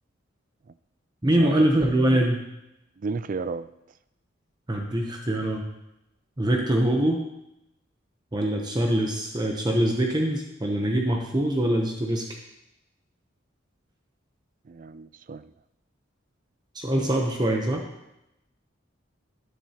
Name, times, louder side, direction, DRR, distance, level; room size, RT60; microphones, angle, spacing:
voice 1, 1.2-2.4 4.7-5.7 6.4-7.2 8.3-12.3 16.7-17.8, right 1 dB, 20° right, 1 dB, 0.8 m, -23 dB
voice 2, 3.0-3.7 14.7-15.5, right 4 dB, 40° right, 14 dB, 0.3 m, -33 dB
11.0 x 10.5 x 2.9 m, 0.89 s
head